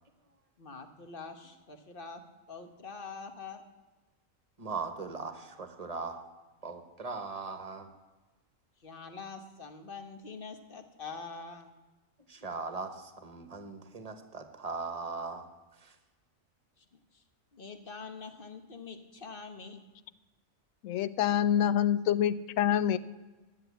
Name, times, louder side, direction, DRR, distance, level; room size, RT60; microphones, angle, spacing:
voice 1, 0.6-3.6 8.8-11.7 16.8-17.2 17.5-19.8, left 4 dB, 45° left, 7 dB, 1.2 m, -45 dB
voice 2, 4.6-6.2 6.6-7.9 12.3-15.5 15.8-15.9, right 4 dB, 30° right, 8 dB, 1.0 m, -39 dB
voice 3, 20.8-23.0, left 10 dB, 90° left, 16 dB, 1.0 m, -26 dB
10.5 x 7.5 x 8.0 m, 1.2 s
omnidirectional pair, 1.4 m